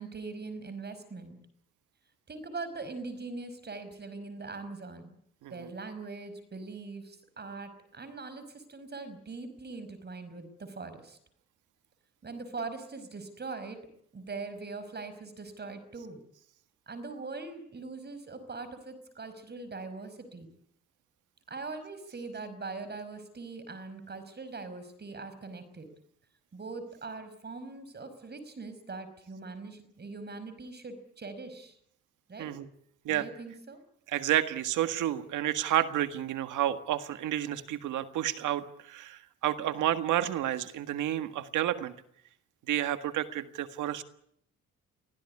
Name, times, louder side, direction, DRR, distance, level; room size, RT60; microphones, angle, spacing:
voice 1, 0.0-1.4 2.3-5.2 5.5-11.2 12.2-13.8 14.1-16.2 16.9-20.5 21.5-25.9 26.5-31.8 32.3-32.5 33.1-33.8, right 3 dB, 35° right, 12 dB, 5.4 m, -41 dB
voice 2, 32.4-32.7 33.0-33.3 34.1-41.9 42.7-44.0, right 12 dB, 85° right, 10 dB, 1.7 m, -30 dB
24.5 x 16.0 x 9.7 m, 0.70 s
cardioid pair, 90°, 30 cm